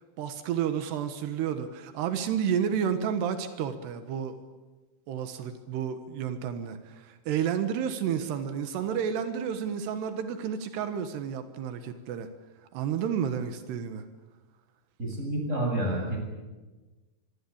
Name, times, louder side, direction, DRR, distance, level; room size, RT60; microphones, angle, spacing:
voice 1, 0.2-4.4 5.1-12.3 12.7-14.0, right 8 dB, 85° right, 8 dB, 3.5 m, -31 dB
voice 2, 15.0-16.2, right 1 dB, 15° right, 1 dB, 7.7 m, -29 dB
25.5 x 23.5 x 8.7 m, 1.2 s
omnidirectional pair, 4.7 m